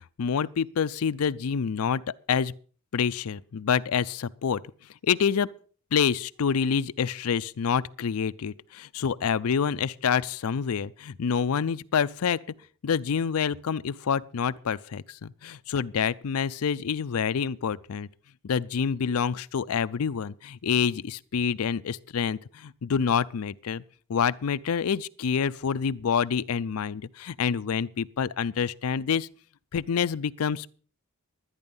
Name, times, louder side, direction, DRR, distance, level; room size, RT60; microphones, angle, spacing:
voice 1, 0.2-2.0 2.3-2.5 2.9-4.6 5.0-5.5 5.9-12.4 12.8-18.1 18.4-23.8 24.1-29.3 29.7-30.7, left 6 dB, 85° left, 0.5 m, -27 dB
12.5 x 9.7 x 5.4 m
head